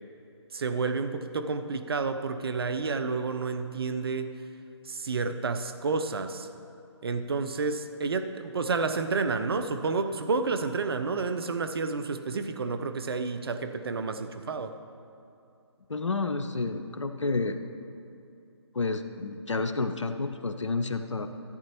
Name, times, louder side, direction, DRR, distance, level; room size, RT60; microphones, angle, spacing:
voice 1, 0.5-4.4 4.8-6.5 7.0-14.7, right 4 dB, 55° right, 9 dB, 0.6 m, -30 dB
voice 2, 15.9-17.6 18.7-21.3, left 3 dB, 85° left, 8 dB, 0.7 m, -30 dB
14.5 x 8.6 x 3.0 m, 2.7 s
figure-of-eight pair, 145°, 15 cm